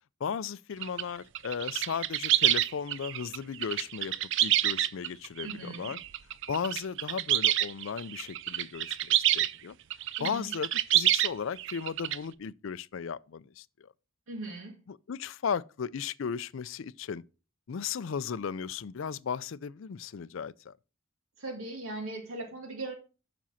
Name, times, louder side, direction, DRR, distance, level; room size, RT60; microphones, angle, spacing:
voice 1, 0.2-4.1 4.4-6.0 6.5-9.8 10.2-13.9 14.9-17.2 17.7-20.7, left 6 dB, 60° left, 0.4 m, -36 dB
sound 1, 0.8-1.0 1.3-9.5 9.9-11.3 11.6-12.2, right 13 dB, 55° right, 0.4 m, -27 dB
voice 2, 5.4-5.9 10.2-10.5 14.3-14.8 21.4-22.9, right 2 dB, 70° right, 2.0 m, -39 dB
7.4 x 6.1 x 5.6 m
head